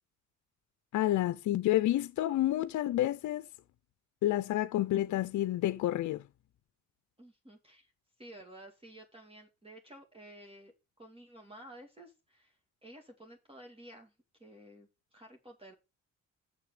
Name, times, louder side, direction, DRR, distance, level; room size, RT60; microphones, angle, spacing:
voice 1, 0.9-3.5 4.2-6.2, left 14 dB, 70° left, 0.6 m, -29 dB
voice 2, 7.2-7.9 8.2-14.1 14.4-15.7, right 1 dB, 20° right, 2.7 m, -53 dB
6.7 x 6.7 x 6.7 m
cardioid pair, 90°, 30 cm